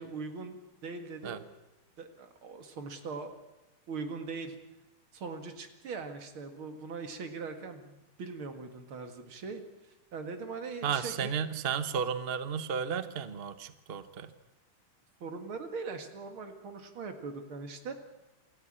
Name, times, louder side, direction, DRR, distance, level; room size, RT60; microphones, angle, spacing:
voice 1, 0.0-1.4 2.0-3.4 3.9-4.6 5.1-9.6 10.1-11.3 15.2-17.9, right 4 dB, 70° right, 7 dB, 2.8 m, -41 dB
voice 2, 10.8-14.3, right 7 dB, 40° right, 12 dB, 0.8 m, -33 dB
28.0 x 13.5 x 8.8 m, 0.98 s
omnidirectional pair, 2.4 m